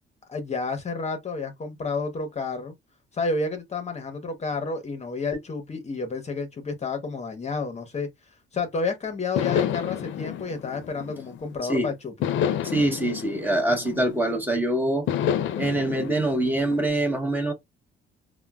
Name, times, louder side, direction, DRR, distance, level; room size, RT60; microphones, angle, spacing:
voice 1, 0.3-2.7 3.1-12.1 15.4-15.7, left 4 dB, 35° left, 0.7 m, -30 dB
sound 1, 9.4-11.6 12.2-14.5 15.1-16.9, left 9 dB, 75° left, 0.4 m, -29 dB
voice 2, 12.6-15.1 15.6-17.5, right 1 dB, 10° right, 0.8 m, -24 dB
3.6 x 2.0 x 2.2 m
cardioid pair, 90°, 20 cm